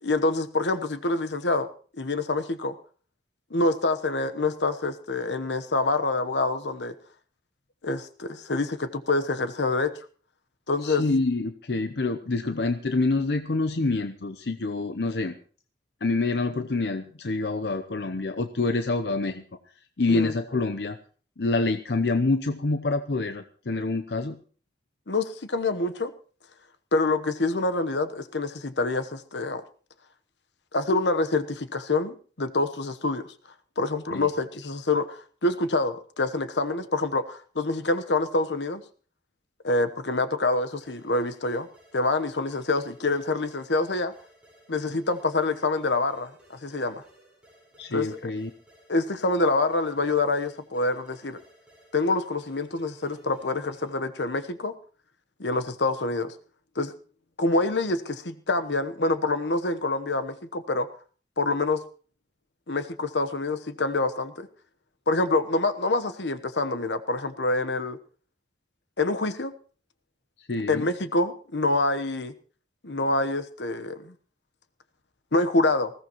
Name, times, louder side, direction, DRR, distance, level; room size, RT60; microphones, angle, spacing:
voice 1, 0.0-1.7 2.0-2.7 3.5-6.9 7.8-9.9 10.7-11.0 20.1-20.3 25.1-26.1 26.9-29.6 30.7-33.2 33.8-38.8 39.6-41.7 41.9-44.1 44.7-47.0 47.9-48.3 48.9-51.4 51.9-54.7 55.4-56.3 56.8-56.9 57.4-60.9 61.4-61.8 62.7-64.5 65.1-68.0 69.0-69.5 70.7-72.3 72.8-74.1 75.3-75.9, left 2 dB, 90° left, 11 dB, 1.1 m, -26 dB
voice 2, 10.8-15.4 16.0-19.4 20.0-21.0 21.4-24.4 34.1-34.3 47.8-48.5 70.4-70.9, left 3 dB, 70° left, 8 dB, 0.7 m, -27 dB
sound 1, 40.8-54.1, equal, 5° right, 6.7 m, -58 dB
20.0 x 15.5 x 3.1 m, 0.41 s
head